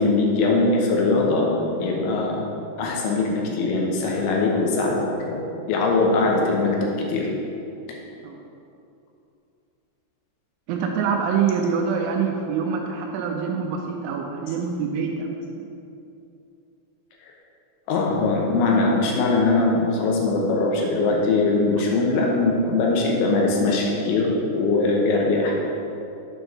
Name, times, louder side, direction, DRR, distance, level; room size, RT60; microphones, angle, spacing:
voice 1, 0.0-2.4 2.8-5.4 5.7-7.3 17.2-17.3 17.9-25.5, left 3 dB, 75° left, -1 dB, 3.1 m, -21 dB
voice 2, 10.7-15.6, right 6 dB, 85° right, 1 dB, 2.8 m, -25 dB
8.0 x 4.5 x 5.6 m, 2.7 s
omnidirectional pair, 5.7 m